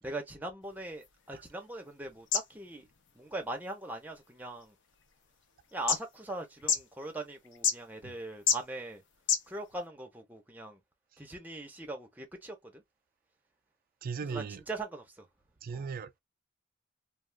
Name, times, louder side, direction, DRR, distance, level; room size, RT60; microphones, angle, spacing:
voice 1, 0.0-2.9 3.1-4.7 5.7-9.0 9.5-10.8 11.2-12.8 14.2-15.3 15.7-15.9, right 2 dB, 10° right, 0.7 m, -41 dB
sound 1, 0.6-9.9, left 7 dB, 65° left, 0.6 m, -36 dB
voice 2, 14.0-14.6 15.6-16.2, right 5 dB, 45° right, 0.3 m, -38 dB
2.4 x 2.4 x 3.2 m
head